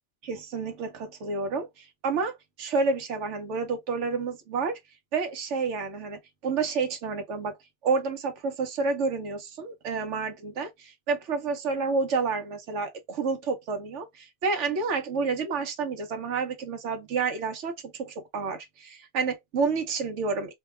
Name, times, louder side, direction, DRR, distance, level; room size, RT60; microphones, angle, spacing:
voice 1, 0.2-4.8 5.1-7.6 7.8-20.5, right 4 dB, 90° right, 1.2 m, -29 dB
2.8 x 2.2 x 3.2 m
omnidirectional pair, 1.2 m